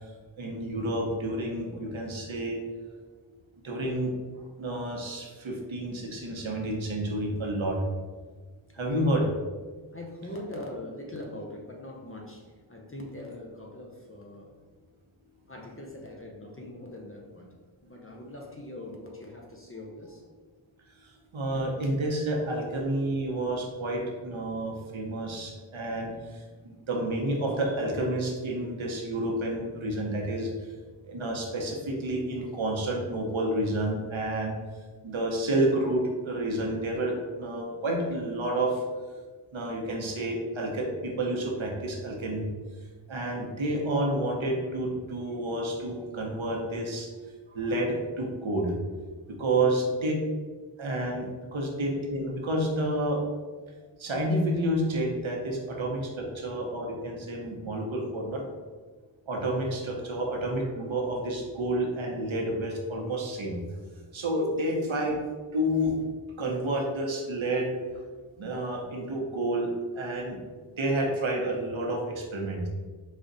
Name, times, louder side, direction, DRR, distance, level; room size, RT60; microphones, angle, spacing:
voice 1, 0.4-2.6 3.6-4.1 4.6-7.8 8.7-9.2 21.0-30.5 31.0-34.6 35.0-38.8 39.5-42.5 43.1-47.1 47.5-48.7 49.4-50.1 50.8-53.2 54.0-58.4 59.3-63.6 64.1-65.2 65.5-66.1 66.4-67.7 68.4-69.7 70.0-70.4 70.8-72.7, right 1 dB, 65° right, 0 dB, 1.1 m, -29 dB
voice 2, 8.8-9.1 9.9-14.7 15.5-17.5 17.8-20.2 43.3-43.6 49.6-49.8 64.9-65.1 68.2-68.3, left 1 dB, 25° left, 0 dB, 0.7 m, -42 dB
5.3 x 2.4 x 4.0 m, 1.4 s
wide cardioid pair, 55°, 50 cm